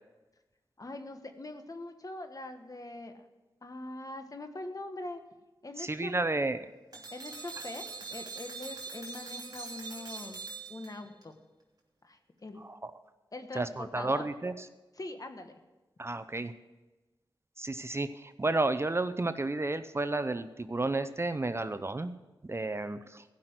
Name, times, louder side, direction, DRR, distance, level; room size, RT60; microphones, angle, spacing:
voice 1, 0.8-3.2 3.6-5.2 5.6-6.1 7.1-7.9 8.1-10.4 10.7-11.4 12.0-12.6 13.3-14.3 15.0-15.5, left 2 dB, 45° left, 7 dB, 1.3 m, -42 dB
voice 2, 5.8-6.7 12.6-12.9 13.5-14.7 16.0-16.5 17.6-22.1 22.4-23.2, right 2 dB, 30° right, 11 dB, 0.6 m, -32 dB
sound 1, 6.9-11.2, right 4 dB, 50° right, 3.1 m, -43 dB
15.5 x 5.9 x 8.0 m, 1.1 s
cardioid pair, 55°, 9 cm